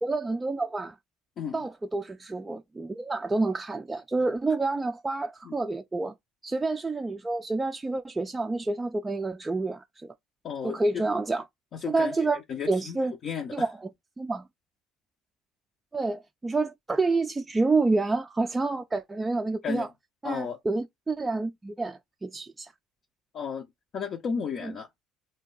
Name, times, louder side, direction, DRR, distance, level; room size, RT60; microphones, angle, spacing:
voice 1, 0.0-1.0 1.5-6.1 6.4-10.1 10.6-11.4 11.9-12.4 12.7-13.1 13.5-13.9 14.2-14.5 15.9-19.9 20.2-22.7 24.6-24.7, right 3 dB, 20° right, 0.3 m, -28 dB
voice 2, 10.4-11.0 11.7-13.0 13.2-13.7 19.6-19.9 20.2-20.6 23.3-23.7 23.9-25.0, left 6 dB, 50° left, 0.5 m, -34 dB
2.5 x 2.2 x 3.7 m
supercardioid pair, 75°, 0 cm